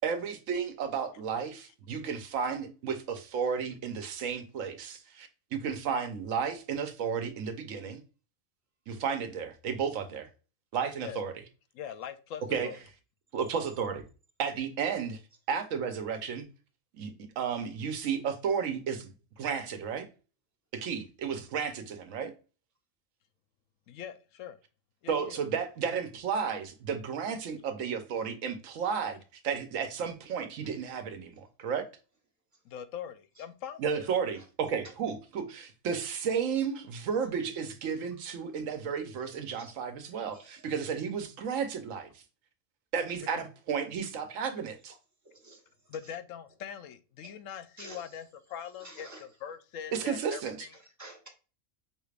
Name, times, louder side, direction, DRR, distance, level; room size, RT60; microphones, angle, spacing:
voice 1, 0.0-8.0 8.9-10.3 10.7-11.3 12.5-12.7 13.3-14.0 14.4-15.2 15.5-16.4 17.0-20.1 20.7-22.3 25.1-31.8 33.8-42.1 42.9-44.9 49.9-50.6, right 6 dB, 80° right, 1.1 m, -33 dB
voice 2, 11.7-12.8 23.9-24.6 25.0-25.4 32.6-34.1 45.9-49.1 49.4-50.7, left 9 dB, 80° left, 0.9 m, -42 dB
voice 3, 40.3-41.0 45.2-46.2 47.2-47.3 47.8-48.2 48.8-49.3 50.7-51.3, right 2 dB, 15° right, 1.0 m, -51 dB
5.3 x 3.3 x 2.4 m
omnidirectional pair, 1.3 m